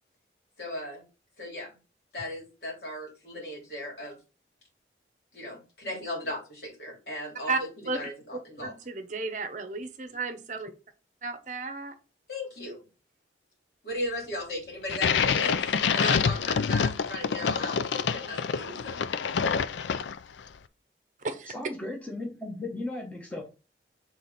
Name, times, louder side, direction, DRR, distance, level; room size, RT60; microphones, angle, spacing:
voice 1, 0.6-1.0 1.4-1.7 2.1-4.2 5.3-7.7 7.9-8.7 12.3-12.8 13.8-19.0, left 1 dB, 60° left, 3.1 m, -37 dB
voice 2, 7.5-8.0 8.3-10.7 11.2-11.9 21.2-21.5, right 3 dB, 45° right, 0.7 m, -33 dB
sound 1, 14.9-20.4, left 6 dB, 85° left, 0.4 m, -27 dB
voice 3, 21.5-23.5, left 2 dB, 10° left, 1.2 m, -36 dB
6.7 x 3.8 x 4.1 m
head